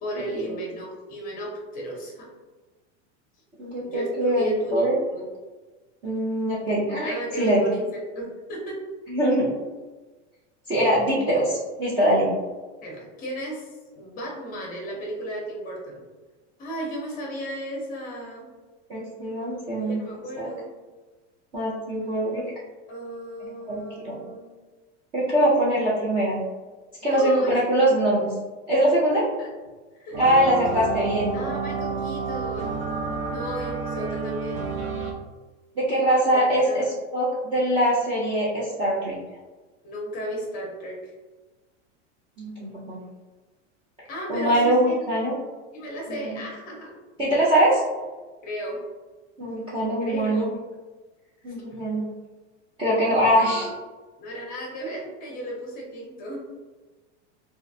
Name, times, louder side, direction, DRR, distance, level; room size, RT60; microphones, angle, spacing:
voice 1, 0.0-2.3 3.8-5.2 6.7-8.8 12.8-13.7 13.9-16.0 16.6-18.5 19.8-20.7 22.9-24.5 27.0-27.8 29.4-29.5 29.9-30.2 31.3-32.8 33.2-34.6 36.3-36.9 39.8-41.1 44.1-45.1 45.7-47.0 48.4-48.8 50.0-50.6 51.5-51.7 53.4-53.6 54.2-56.4, right 1 dB, 25° left, -2 dB, 0.7 m, -34 dB
voice 2, 3.6-5.0 6.0-7.6 9.1-9.5 10.7-12.3 18.9-20.0 20.4-20.5 21.5-22.5 23.7-24.2 25.1-26.4 27.0-28.3 28.7-29.3 30.2-31.3 33.0-33.4 35.8-36.9 37.1-39.2 42.4-43.0 44.3-45.3 46.1-46.5 47.2-47.8 49.4-50.5 51.4-52.0 52.8-53.7, right 1 dB, 15° right, -10 dB, 0.3 m, -23 dB
sound 1, 30.1-35.1, right 5 dB, 70° right, 0.6 m, -30 dB
3.1 x 2.4 x 2.6 m, 1.3 s
supercardioid pair, 160°, 35 cm